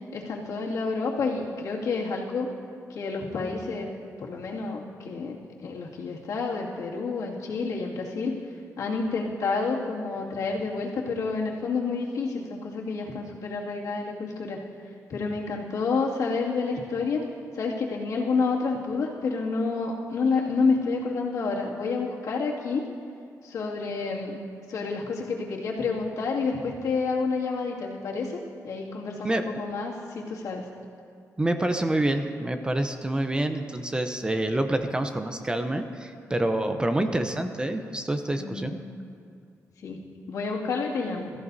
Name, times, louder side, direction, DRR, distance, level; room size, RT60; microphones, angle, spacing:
voice 1, 0.1-2.5 2.9-3.9 4.2-8.3 8.8-14.6 15.1-17.3 17.5-22.8 23.4-24.4 24.7-28.4 28.6-30.7 38.4-38.8 39.8-41.3, left 4 dB, 80° left, -4 dB, 2.3 m, -29 dB
voice 2, 31.4-38.7, right 1 dB, 15° right, 7 dB, 0.7 m, -27 dB
22.5 x 14.5 x 2.7 m, 2.3 s
wide cardioid pair, 130°, 6 cm